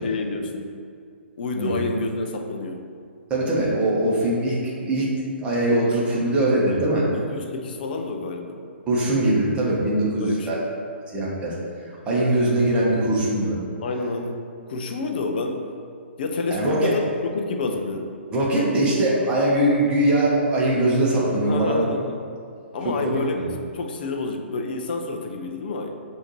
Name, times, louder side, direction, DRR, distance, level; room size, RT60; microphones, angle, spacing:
voice 1, 0.0-0.7 1.4-2.8 7.1-8.6 10.2-10.6 13.8-14.4 14.7-15.6 16.2-18.1 21.5-22.2 22.7-23.4 23.7-26.0, left 3 dB, 50° left, 3 dB, 0.5 m, -28 dB
voice 2, 3.3-5.1 5.4-7.1 8.9-10.6 11.1-11.6 12.1-13.7 16.5-16.9 18.3-21.8 23.0-23.2, right 1 dB, 15° right, -6 dB, 1.0 m, -21 dB
6.3 x 2.7 x 3.1 m, 2.3 s
figure-of-eight pair, 125°, 7 cm